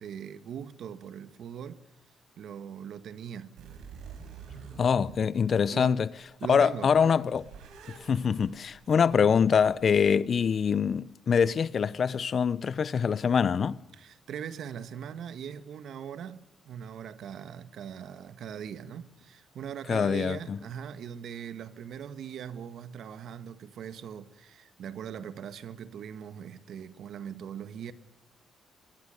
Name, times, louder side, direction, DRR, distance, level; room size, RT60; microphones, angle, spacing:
voice 1, 0.0-1.8 2.4-3.5 5.7-6.0 6.4-7.3 14.0-27.9, right 8 dB, 70° right, 1.6 m, -40 dB
sound 1, 3.6-6.3 6.7-10.1, right 6 dB, 85° right, 5.3 m, -48 dB
voice 2, 4.8-6.1 6.5-7.4 8.1-13.8 19.9-20.6, left 6 dB, 50° left, 0.7 m, -24 dB
23.0 x 22.0 x 6.6 m
cardioid pair, 90°, 0 cm